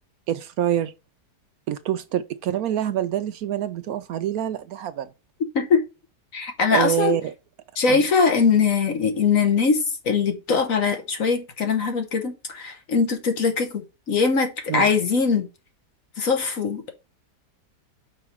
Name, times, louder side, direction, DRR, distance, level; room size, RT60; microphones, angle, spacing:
voice 1, 0.3-0.9 1.7-5.1 6.7-7.3 7.9-8.0 14.7-14.9, right 11 dB, 70° right, 1.0 m, -26 dB
voice 2, 6.3-7.1 7.8-15.5 16.2-16.9, left 5 dB, 55° left, 1.4 m, -22 dB
5.6 x 4.9 x 4.6 m
omnidirectional pair, 1.8 m